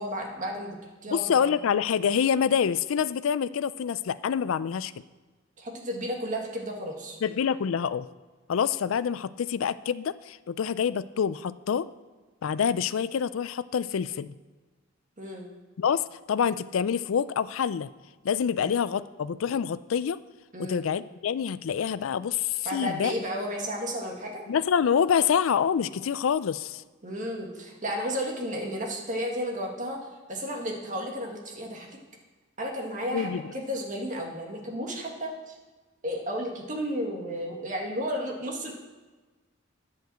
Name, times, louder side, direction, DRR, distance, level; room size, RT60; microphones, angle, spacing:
voice 1, 0.0-1.5 5.6-7.2 15.2-15.5 18.6-18.7 20.5-20.9 22.7-24.4 27.0-30.0 30.3-31.9 32.6-35.6 36.0-38.7, equal, 40° right, 1 dB, 1.8 m, -33 dB
voice 2, 1.1-4.9 7.2-8.1 8.5-11.9 12.4-14.4 15.8-17.9 18.2-20.2 20.6-23.1 24.5-26.8 33.1-33.4, left 7 dB, 85° left, 16 dB, 0.4 m, -26 dB
10.5 x 5.3 x 7.6 m, 1.3 s
head